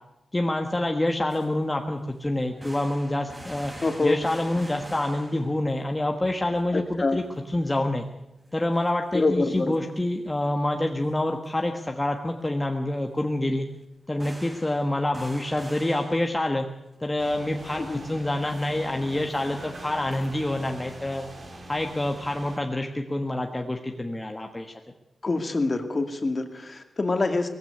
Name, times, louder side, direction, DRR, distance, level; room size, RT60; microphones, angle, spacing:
voice 1, 0.3-3.7 4.0-8.0 8.5-13.7 14.1-16.7 17.0-21.3 21.7-24.7, left 1 dB, 15° left, 3 dB, 1.4 m, -27 dB
sound 1, 1.3-1.5 1.8-1.9 2.4-5.9 6.2-6.3 6.6-6.7 7.4-7.5 7.8-8.1 8.4-9.8 10.9-11.0 11.4-11.5 13.0-13.2 13.8-13.9 14.2-17.0, right 1 dB, 15° right, 5.6 m, -45 dB
voice 2, 3.8-4.2 6.7-7.2 9.1-9.8 17.7-18.0 25.2-27.5, left 3 dB, 35° left, 7 dB, 2.3 m, -25 dB
sound 2, 17.2-22.6, right 1 dB, 45° right, 4.1 m, -43 dB
19.5 x 15.5 x 9.3 m, 0.90 s
wide cardioid pair, 110°, 0 cm